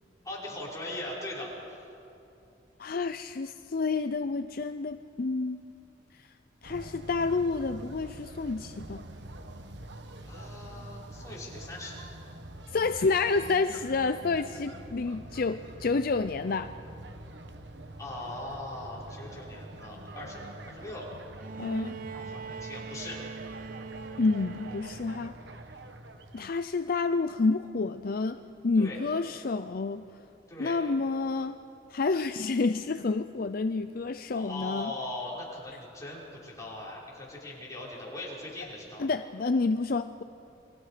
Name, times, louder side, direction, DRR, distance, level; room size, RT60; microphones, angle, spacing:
voice 1, 0.2-1.8 10.2-12.1 18.0-21.1 22.1-23.2 28.8-29.0 30.5-30.7 34.3-39.1, left 2 dB, 20° left, -6 dB, 5.5 m, -40 dB
voice 2, 2.8-5.6 6.2-6.3 6.6-9.0 12.7-16.7 21.6-22.0 24.2-25.3 26.3-30.0 30.6-31.6 31.9-34.9 39.0-40.2, left 4 dB, 50° left, 10 dB, 0.5 m, -29 dB
sound 1, 6.6-26.5, right 1 dB, 65° right, 1.3 m, -45 dB
Bowed string instrument, 21.4-25.4 26.7-26.8, right 5 dB, 50° right, 0.5 m, -42 dB
29.5 x 23.5 x 5.0 m, 2.8 s
head